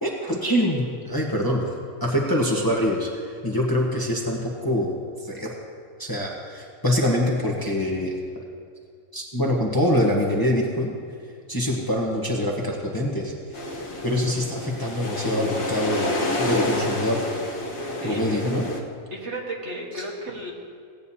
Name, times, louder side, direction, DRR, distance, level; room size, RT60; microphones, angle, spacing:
voice 1, 0.0-1.6 2.0-5.5 6.0-8.1 9.1-10.9 11.5-13.3 14.0-17.2 18.0-18.7 19.9-20.0, left 1 dB, 15° left, -2 dB, 1.0 m, -24 dB
sound 1, 13.5-18.8, left 1 dB, 60° left, 1.4 m, -28 dB
voice 2, 18.0-18.4 19.1-20.5, right 1 dB, 55° right, -2 dB, 1.7 m, -33 dB
17.5 x 9.0 x 2.8 m, 2.2 s
omnidirectional pair, 1.4 m